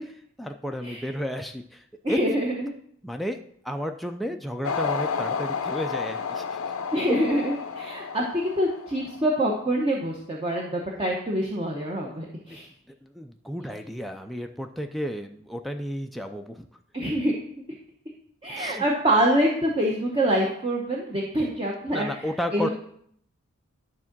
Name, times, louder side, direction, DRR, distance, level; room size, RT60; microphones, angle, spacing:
voice 1, 0.0-2.2 3.0-3.4 3.6-6.6 7.1-7.2 10.9-11.0 12.1-12.2 13.0-16.7 18.5-18.9 21.9-22.7, equal, ahead, 4 dB, 0.3 m, -32 dB
voice 2, 2.0-2.7 6.9-12.7 16.9-17.3 18.4-22.3 22.5-22.7, right 1 dB, 25° right, -2 dB, 0.9 m, -25 dB
sound 1, 4.6-9.3, left 5 dB, 70° left, 0.6 m, -31 dB
11.0 x 3.7 x 5.9 m, 0.67 s
head